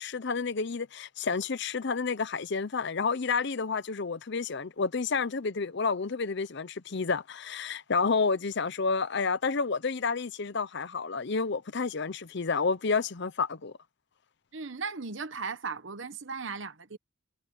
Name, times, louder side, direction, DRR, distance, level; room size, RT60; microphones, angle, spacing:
voice 1, 0.0-13.7, left 4 dB, 55° left, 0.7 m, -30 dB
voice 2, 14.5-17.0, right 4 dB, 60° right, 1.2 m, -37 dB
head